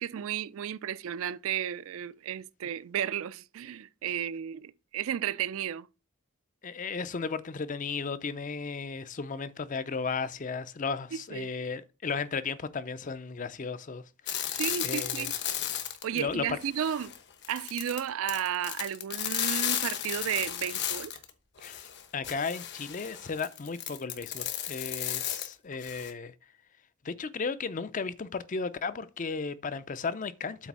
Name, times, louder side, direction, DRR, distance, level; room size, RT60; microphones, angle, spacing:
voice 1, 0.0-5.9 11.3-11.5 14.5-15.3 16.0-17.1 17.5-21.2, right 9 dB, 65° right, 0.3 m, -33 dB
voice 2, 6.6-15.3 16.1-16.6 21.6-26.3 27.0-30.7, left 5 dB, 35° left, 0.5 m, -35 dB
sound 1, 14.3-16.3 16.6-21.3 21.6-26.1, left 10 dB, 50° left, 1.0 m, -34 dB
8.1 x 3.4 x 6.0 m
head